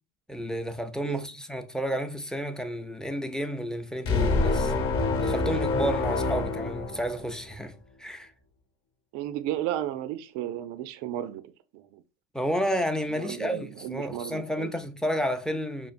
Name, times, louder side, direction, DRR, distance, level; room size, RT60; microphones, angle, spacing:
voice 1, 0.3-4.7 5.2-8.3 12.3-15.9, equal, ahead, 0.4 m, -31 dB
sound 1, 4.0-7.5, left 3 dB, 45° left, 0.9 m, -26 dB
voice 2, 9.1-11.4 11.7-12.0 13.2-14.7, right 12 dB, 75° right, 0.5 m, -33 dB
5.5 x 2.4 x 2.4 m
supercardioid pair, 100°, 33 cm